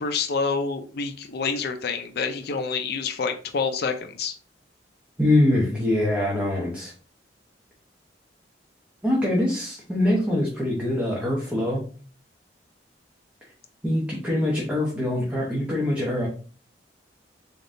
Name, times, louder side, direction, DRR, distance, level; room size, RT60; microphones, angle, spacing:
voice 1, 0.0-4.3, left 5 dB, 60° left, 6 dB, 0.5 m, -27 dB
voice 2, 5.2-6.9 9.0-11.8 13.8-16.3, left 1 dB, 10° right, -4 dB, 0.9 m, -23 dB
3.8 x 3.5 x 2.6 m, 0.40 s
head